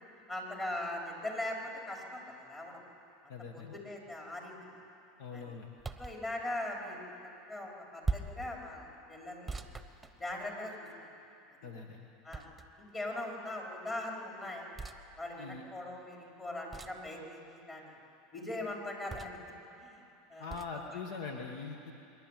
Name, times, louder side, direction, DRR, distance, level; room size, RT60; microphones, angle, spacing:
voice 1, 0.1-2.8 3.2-4.6 5.3-5.4 6.0-7.0 7.4-9.6 10.2-10.9 12.2-12.4 12.8-14.7 15.2-18.0 18.3-19.4 19.8-20.0 20.3-20.6 20.9-21.0, left 1 dB, 25° left, -1 dB, 4.8 m, -40 dB
voice 2, 3.3-3.8 5.2-5.8 11.6-12.1 15.4-15.6 20.4-21.9, left 5 dB, 70° left, 2 dB, 1.7 m, -42 dB
sound 1, 5.8-6.2 8.0-8.5 9.5-10.6 12.3-12.9 14.7-15.0 16.7-17.1 19.1-19.5 20.5-20.7, right 4 dB, 10° right, 1.1 m, -39 dB
25.0 x 11.5 x 9.2 m, 2.8 s
hypercardioid pair, 95°, 0 cm